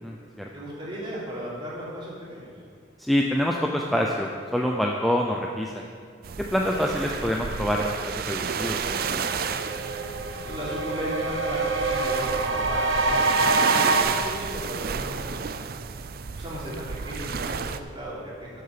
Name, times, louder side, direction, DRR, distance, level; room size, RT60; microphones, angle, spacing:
voice 1, 0.0-0.5 3.0-5.8 6.4-9.2, equal, ahead, -1 dB, 0.6 m, -26 dB
voice 2, 0.5-2.5 10.4-15.5 16.3-16.7 17.0-18.6, equal, 25° right, -7 dB, 3.3 m, -36 dB
sound 1, 6.2-17.8, right 6 dB, 50° right, 0.5 m, -31 dB
sound 2, 8.2-8.3 8.7-14.0, right 3 dB, 85° right, 1.2 m, -26 dB
12.5 x 6.7 x 6.8 m, 2.2 s
head